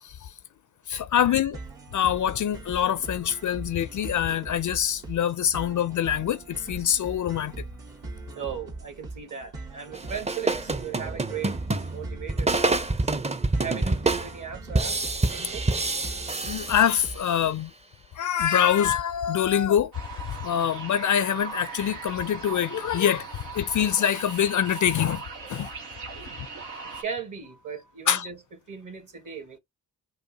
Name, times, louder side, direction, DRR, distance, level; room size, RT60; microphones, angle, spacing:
voice 1, 0.0-0.3 0.9-1.6 1.9-7.6 16.4-17.7 18.1-19.9 20.2-25.2 25.5-25.7 28.1-28.3, left 9 dB, 50° left, 0.5 m, -25 dB
sound 1, 1.5-17.5, right 3 dB, 70° right, 1.9 m, -41 dB
voice 2, 8.3-11.6 11.9-15.7 27.0-28.4 28.7-29.6, right 7 dB, 50° right, 1.7 m, -37 dB
sound 2, 9.9-17.4, right 2 dB, 15° right, 0.6 m, -27 dB
sound 3, 19.9-27.0, right 5 dB, 90° right, 1.2 m, -39 dB
5.3 x 2.1 x 2.8 m
supercardioid pair, 45°, 40 cm